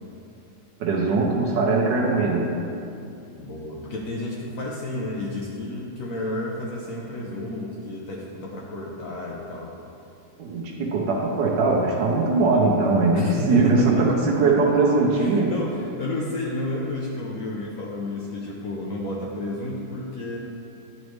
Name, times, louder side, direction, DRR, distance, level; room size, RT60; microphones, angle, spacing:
voice 1, 0.8-2.5 10.4-15.5, right 3 dB, 80° right, -3 dB, 1.4 m, -21 dB
voice 2, 3.4-9.7 13.1-14.0 15.2-20.4, left 1 dB, 65° left, -3 dB, 0.9 m, -31 dB
9.8 x 4.1 x 3.1 m, 2.7 s
omnidirectional pair, 1.9 m